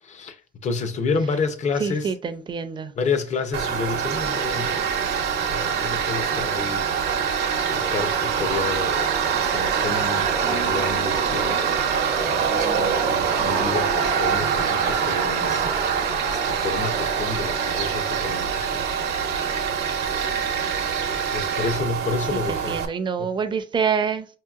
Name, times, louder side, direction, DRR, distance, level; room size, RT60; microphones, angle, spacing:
voice 1, 0.0-2.1 3.0-4.9 5.3-6.9 7.3-11.8 12.1-18.9 21.3-22.8 23.2-23.3, left 4 dB, 45° left, 0.6 m, -30 dB
voice 2, 1.8-2.9 22.5-24.3, right 6 dB, 30° right, 0.5 m, -26 dB
Tools, 3.5-22.9, right 6 dB, 70° right, 0.7 m, -24 dB
5.0 x 2.8 x 2.4 m
cardioid pair, 110°, 17 cm